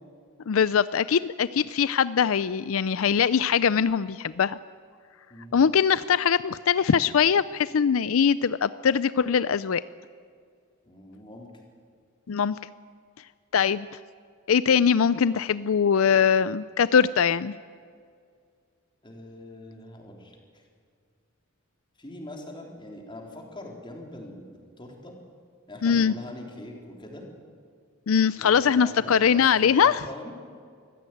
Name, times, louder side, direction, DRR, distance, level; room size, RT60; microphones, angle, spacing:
voice 1, 0.5-4.6 5.5-9.8 12.3-12.6 13.5-13.9 14.5-17.5 25.8-26.1 28.1-30.0, left 7 dB, 80° left, 16 dB, 0.5 m, -22 dB
voice 2, 10.8-11.5 19.0-20.6 22.0-25.2 25.7-27.3 28.4-30.3, left 1 dB, 25° left, 1 dB, 3.9 m, -42 dB
24.5 x 15.5 x 9.3 m, 2.1 s
head